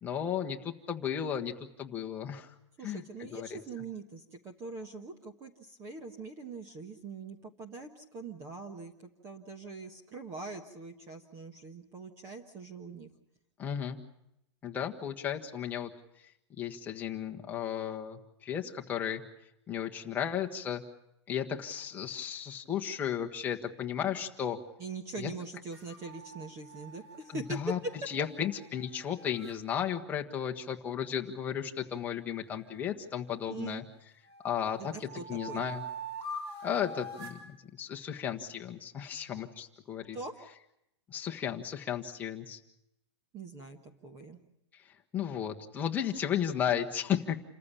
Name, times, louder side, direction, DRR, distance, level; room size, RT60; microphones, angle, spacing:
voice 1, 0.0-2.5 2.8-3.6 13.6-14.0 14.6-15.9 16.6-19.2 19.7-20.8 21.3-24.6 25.2-25.3 27.3-27.8 28.1-33.8 34.4-35.8 36.6-40.2 41.1-42.6 44.9-47.4, left 9 dB, 10° left, 2 dB, 1.4 m, -34 dB
voice 2, 2.8-13.1 24.8-27.6 33.4-33.8 34.8-35.6 40.1-40.3 43.3-44.4, right 4 dB, 20° right, 5 dB, 1.3 m, -43 dB
sound 1, 25.7-29.6 32.5-33.8 34.3-37.5, right 1 dB, 60° right, 6.0 m, -45 dB
28.0 x 14.5 x 8.5 m, 0.81 s
hypercardioid pair, 170°, 15 cm